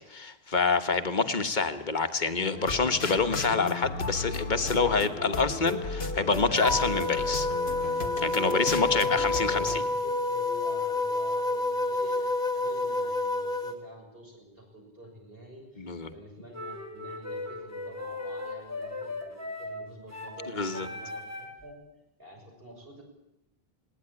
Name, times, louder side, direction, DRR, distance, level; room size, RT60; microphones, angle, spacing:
voice 1, 0.1-7.5 8.2-9.8 15.8-16.1 20.5-20.9, left 4 dB, 50° left, 9 dB, 1.5 m, -27 dB
sound 1, 2.5-9.8, left 3 dB, 80° left, 1.8 m, -35 dB
sound 2, 6.6-13.7, left 2 dB, 5° left, 2.2 m, -29 dB
voice 2, 8.5-21.8 22.2-23.0, right 1 dB, 65° right, 1 dB, 6.9 m, -47 dB
sound 3, 16.5-21.6, left 2 dB, 15° right, 3.2 m, -38 dB
20.0 x 18.5 x 10.0 m, 0.88 s
omnidirectional pair, 1.0 m